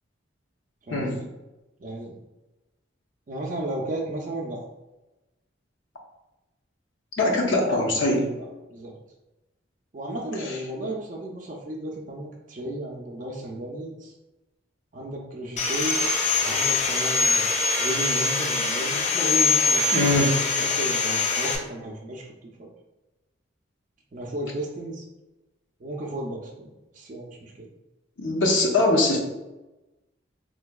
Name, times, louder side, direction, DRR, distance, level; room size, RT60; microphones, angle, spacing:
voice 1, 0.9-1.3 1.8-2.2 3.3-4.6 8.4-8.9 9.9-14.1 14.9-16.0 16.4-22.3 22.6-22.7 24.1-25.0 25.8-27.7, right 1 dB, 40° right, -2 dB, 0.4 m, -34 dB
voice 2, 7.2-8.3 19.9-20.3 28.2-29.2, left 2 dB, 75° left, -1 dB, 0.7 m, -22 dB
Sawing, 15.6-21.6, left 3 dB, 35° left, 0.4 m, -23 dB
3.8 x 2.7 x 2.2 m, 1.0 s
head